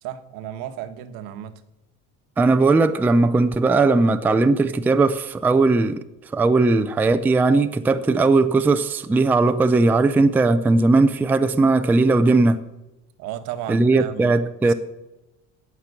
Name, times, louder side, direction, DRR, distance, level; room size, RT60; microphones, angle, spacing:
voice 1, 0.0-1.6 13.2-14.3 14.6-14.7, right 11 dB, 80° right, 1.3 m, -34 dB
voice 2, 2.4-6.0 6.3-12.6 13.7-14.7, right 3 dB, 5° right, 0.4 m, -18 dB
17.5 x 6.0 x 8.2 m
cardioid pair, 160°, 35 cm